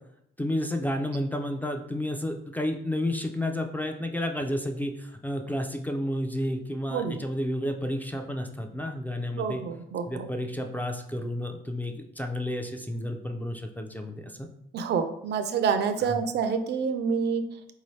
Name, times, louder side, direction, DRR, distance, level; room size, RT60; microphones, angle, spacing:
voice 1, 0.4-9.6 10.1-14.5 16.1-16.2, left 1 dB, 10° left, 4 dB, 0.3 m, -31 dB
voice 2, 9.3-10.3 14.7-17.4, right 6 dB, 60° right, 9 dB, 0.4 m, -27 dB
3.8 x 2.7 x 3.1 m, 0.77 s
cardioid pair, 90°, 20 cm